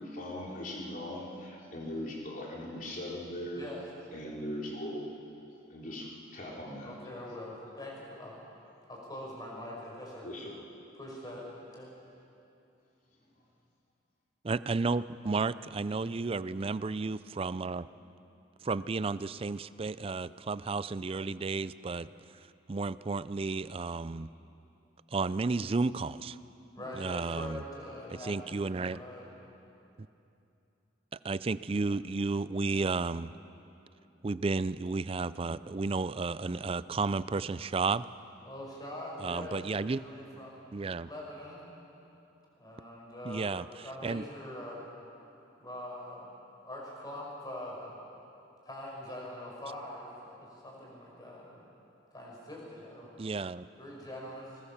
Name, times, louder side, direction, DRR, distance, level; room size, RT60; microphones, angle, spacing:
voice 1, 0.0-3.6 4.1-5.1 5.7-6.9 10.2-10.6, left 1 dB, 45° left, -3 dB, 3.9 m, -39 dB
voice 2, 6.8-8.4 8.9-10.3 10.9-11.9 26.7-29.3 38.5-40.6 41.0-41.6 42.6-44.8 45.6-46.3 46.6-47.9 48.7-51.6 52.1-53.3 53.8-54.6, left 1 dB, 20° left, -3 dB, 5.8 m, -43 dB
voice 3, 14.5-17.9 18.6-22.1 22.7-24.3 25.1-26.4 26.9-27.6 28.2-29.0 31.2-33.3 34.2-38.1 39.2-40.0 40.7-41.1 43.2-43.6 44.0-44.2 53.2-53.7, right 3 dB, 30° right, 16 dB, 0.4 m, -32 dB
20.5 x 20.5 x 7.3 m, 2.8 s
head